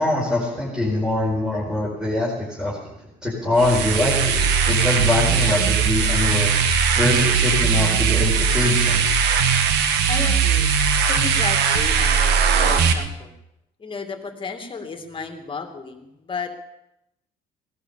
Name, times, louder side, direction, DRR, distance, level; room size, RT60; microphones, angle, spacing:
voice 1, 0.0-2.8 3.2-6.5 7.0-9.3, left 2 dB, 5° right, -4 dB, 4.7 m, -23 dB
sound 1, 3.5-12.9, right 6 dB, 85° right, 1.7 m, -19 dB
voice 2, 10.1-10.7 11.1-13.3 13.8-16.5, left 4 dB, 30° left, 6 dB, 2.4 m, -33 dB
18.0 x 11.5 x 7.0 m, 0.86 s
cardioid pair, 110°, 17 cm